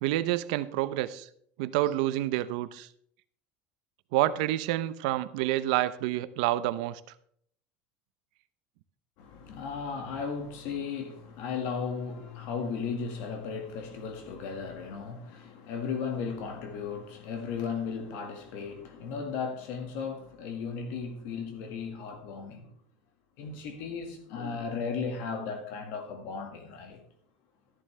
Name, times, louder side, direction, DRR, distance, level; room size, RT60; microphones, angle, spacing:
voice 1, 0.0-1.3 1.6-2.9 4.1-7.0, right 15 dB, 75° right, 0.7 m, -28 dB
voice 2, 9.2-22.7 23.4-27.0, left 5 dB, 60° left, 1.9 m, -36 dB
12.5 x 11.0 x 3.3 m
cardioid pair, 165°, 4 cm